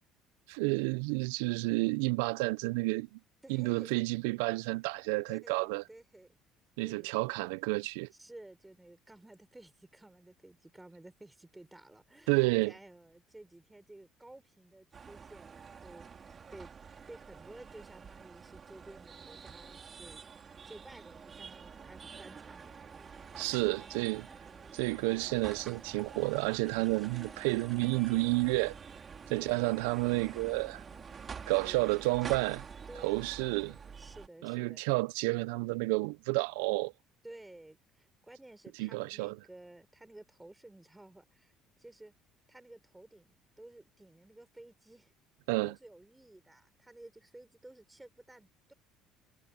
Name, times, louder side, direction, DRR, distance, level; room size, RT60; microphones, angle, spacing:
voice 1, 0.5-3.2 3.5-5.8 6.8-8.1 12.3-12.7 23.3-24.3 24.7-28.8 29.3-30.8 31.5-32.7 33.0-33.8 34.4-36.9 38.7-39.4 45.5-45.8, right 25 dB, 90° right, 0.3 m, -30 dB
voice 2, 3.4-4.0 5.3-6.3 6.8-7.1 8.1-16.7 17.1-20.2 20.7-23.0 29.3-30.0 31.6-31.9 32.9-34.8 37.2-41.5 41.8-42.1 42.5-45.1 45.6-48.7, right 1 dB, 10° right, 4.1 m, -53 dB
sound 1, 14.9-34.3, right 6 dB, 35° right, 3.4 m, -48 dB
sound 2, 21.5-31.2, left 5 dB, 30° left, 3.4 m, -65 dB
supercardioid pair, 90°, 0 cm